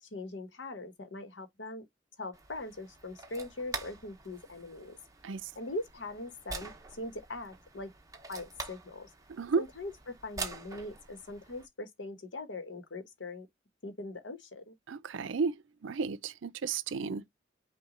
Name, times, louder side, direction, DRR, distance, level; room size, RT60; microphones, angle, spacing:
voice 1, 0.0-1.9 2.2-5.0 5.5-7.9 8.3-9.1 9.6-13.5 13.8-14.8, left 2 dB, 70° left, 1.0 m, -41 dB
sound 1, 2.3-11.7, right 4 dB, 15° right, 0.7 m, -45 dB
voice 2, 9.3-9.6 14.9-17.3, right 5 dB, 80° right, 0.5 m, -33 dB
5.9 x 2.2 x 3.7 m
head